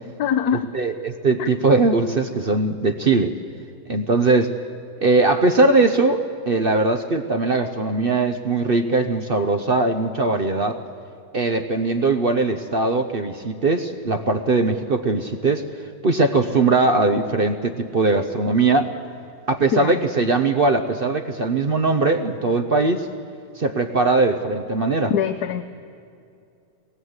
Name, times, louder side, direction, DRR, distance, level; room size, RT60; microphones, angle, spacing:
voice 1, 0.2-0.7 1.4-1.5 19.7-20.0 25.1-25.6, left 8 dB, 70° left, 8 dB, 1.2 m, -23 dB
voice 2, 0.7-3.3 3.9-4.5 5.0-6.2 6.5-10.8 11.3-15.6 16.0-18.9 19.5-23.1 23.6-25.1, right 3 dB, 45° right, 6 dB, 0.8 m, -20 dB
24.0 x 20.5 x 8.0 m, 2.5 s
omnidirectional pair, 1.8 m